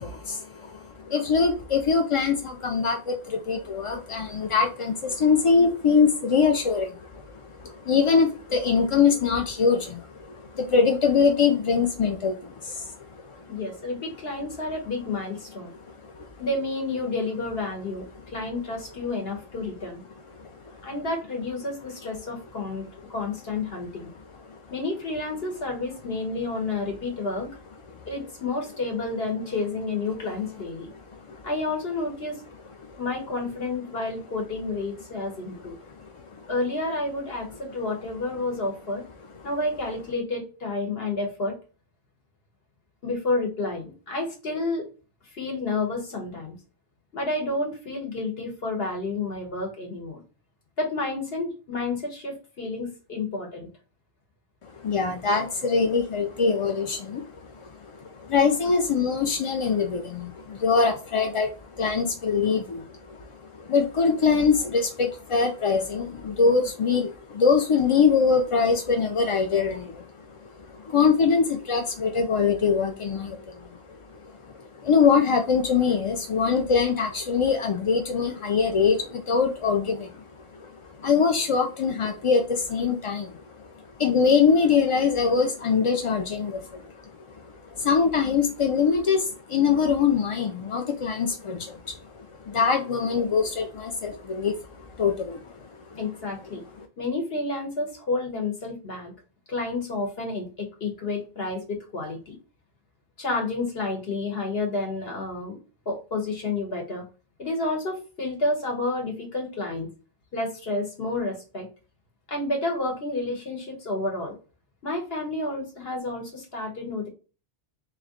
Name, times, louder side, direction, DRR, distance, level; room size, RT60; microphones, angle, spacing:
voice 1, 0.0-13.4 16.0-16.3 20.3-20.8 31.1-31.4 32.9-33.0 36.0-36.5 54.7-73.7 74.1-86.9 87.4-95.5 95.9-96.0, left 5 dB, 50° left, 4 dB, 0.4 m, -24 dB
voice 2, 13.5-15.7 16.4-20.0 20.8-24.1 24.7-27.5 28.1-30.9 31.4-32.4 33.0-35.8 36.5-39.0 39.4-41.6 43.0-44.9 45.3-46.6 47.1-50.2 50.8-53.7 96.0-96.6 97.0-99.1 99.5-102.4 103.2-105.6 105.8-107.0 107.4-109.9 110.3-111.7 112.3-114.4 114.8-117.1, left 2 dB, 70° left, 2 dB, 1.6 m, -30 dB
3.1 x 3.0 x 3.7 m, 0.34 s
omnidirectional pair, 1.1 m